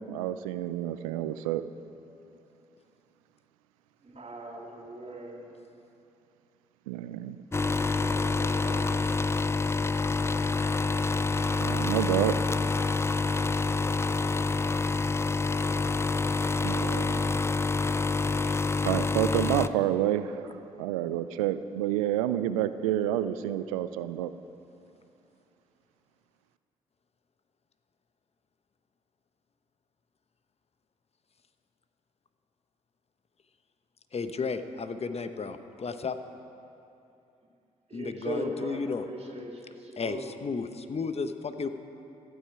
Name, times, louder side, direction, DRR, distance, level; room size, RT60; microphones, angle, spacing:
voice 1, 0.0-1.6 6.9-7.4 11.6-12.4 16.6-17.3 18.4-20.5 20.8-24.3, right 12 dB, 80° right, 13 dB, 0.5 m, -29 dB
voice 2, 4.0-5.5 7.6-9.1 37.9-40.3, right 1 dB, 35° right, 0 dB, 3.1 m, -39 dB
sound 1, 7.5-19.7, left 3 dB, 15° left, 0.5 m, -27 dB
voice 3, 34.1-36.2 37.9-39.5 40.0-41.7, left 4 dB, 35° left, 9 dB, 1.1 m, -33 dB
26.0 x 9.1 x 4.9 m, 2.8 s
figure-of-eight pair, 40°, 17 cm